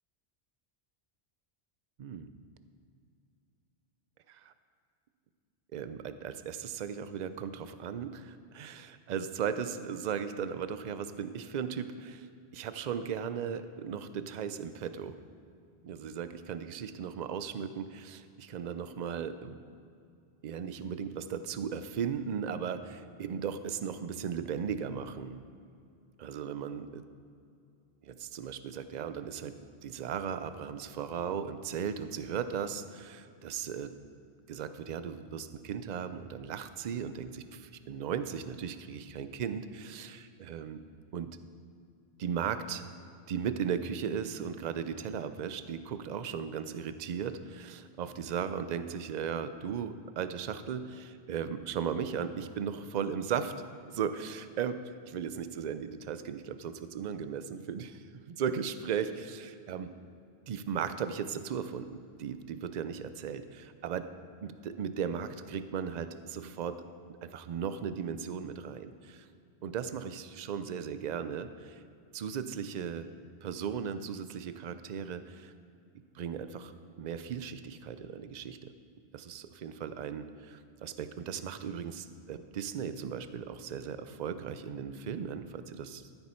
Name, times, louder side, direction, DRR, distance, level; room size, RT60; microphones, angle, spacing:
voice 1, 2.0-2.3 4.3-4.5 5.7-12.3 12.5-15.2 15.8-19.6 20.4-25.4 26.2-27.0 28.0-29.5 29.8-33.9 34.5-40.8 41.1-41.3 42.2-43.0 43.3-53.5 53.9-54.8 55.1-59.9 60.5-64.1 64.4-66.8 67.2-69.3 69.6-71.8 72.1-73.1 73.4-75.5 76.1-76.7 77.0-78.7 79.1-86.1, right 7 dB, 55° right, 11 dB, 0.6 m, -37 dB
14.0 x 8.0 x 4.4 m, 2.5 s
omnidirectional pair, 1.1 m